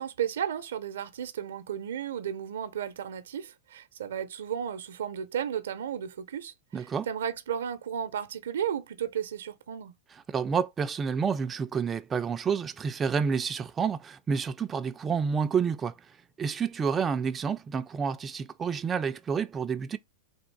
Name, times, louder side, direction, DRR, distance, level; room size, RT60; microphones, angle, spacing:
voice 1, 0.0-9.9, right 9 dB, 85° right, 0.5 m, -34 dB
voice 2, 6.7-7.1 10.1-20.0, right 6 dB, 20° right, 0.3 m, -29 dB
3.5 x 2.5 x 4.6 m
hypercardioid pair, 120°, 0 cm